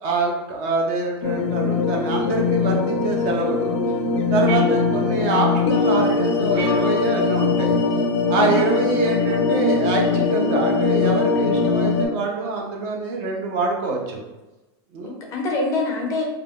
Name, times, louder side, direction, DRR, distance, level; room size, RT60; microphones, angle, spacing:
voice 1, 0.0-3.7 4.3-7.8 8.3-14.2 14.9-15.2, right 3 dB, 35° right, 0 dB, 0.5 m, -25 dB
sound 1, 1.2-12.1, left 4 dB, 85° left, 0.4 m, -21 dB
sound 2, 4.5-5.3 6.5-7.3 8.5-9.4, right 5 dB, 65° right, 0.9 m, -36 dB
voice 2, 8.4-8.9 15.0-16.2, left 2 dB, 25° left, 0 dB, 0.4 m, -26 dB
2.5 x 2.2 x 3.3 m, 1.1 s
supercardioid pair, 170°, 13 cm